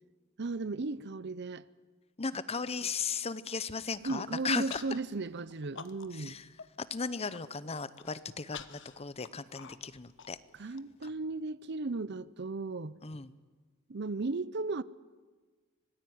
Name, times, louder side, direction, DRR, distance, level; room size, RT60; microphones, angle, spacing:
voice 1, 0.4-1.7 2.8-2.9 4.0-6.4 10.5-13.0 13.9-14.8, right 3 dB, 55° right, 0.7 m, -35 dB
voice 2, 2.2-4.8 6.1-6.4 6.9-10.4 13.0-13.3, left 5 dB, 30° left, 0.8 m, -36 dB
Human voice, 3.8-4.3 4.7-5.0 5.4-6.3 6.6-6.7 7.1-7.4 7.9-10.8, left 7 dB, 60° left, 1.2 m, -48 dB
25.5 x 19.0 x 9.5 m
head